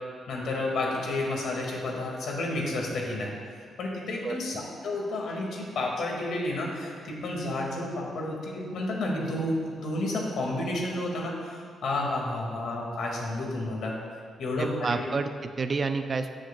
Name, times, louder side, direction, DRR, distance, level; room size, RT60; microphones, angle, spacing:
voice 1, 0.3-3.3 3.8-13.9 14.4-15.0, left 2 dB, 75° left, -2 dB, 2.0 m, -31 dB
voice 2, 14.6-16.3, right 4 dB, 40° right, 8 dB, 0.4 m, -29 dB
15.0 x 6.3 x 2.3 m, 2.2 s
cardioid pair, 110°, 0 cm